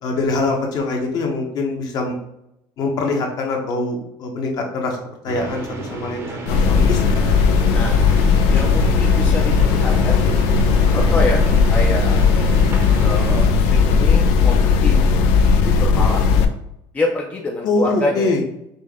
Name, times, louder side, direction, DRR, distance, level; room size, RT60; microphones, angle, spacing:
voice 1, 0.0-2.2 2.8-5.0 5.2-7.0 17.6-18.4, left 3 dB, 45° left, 2 dB, 0.9 m, -23 dB
sound 1, 5.3-13.5, right 2 dB, 30° right, 0.7 m, -33 dB
sound 2, 6.5-16.5, left 5 dB, 90° left, 0.5 m, -16 dB
voice 2, 7.7-8.1 8.5-10.2 10.9-11.4 11.7-12.2 13.0-15.0 15.6-16.3 16.9-18.4, left 2 dB, 15° left, -1 dB, 0.4 m, -26 dB
5.3 x 2.1 x 3.5 m, 0.82 s
cardioid pair, 160°, 10 cm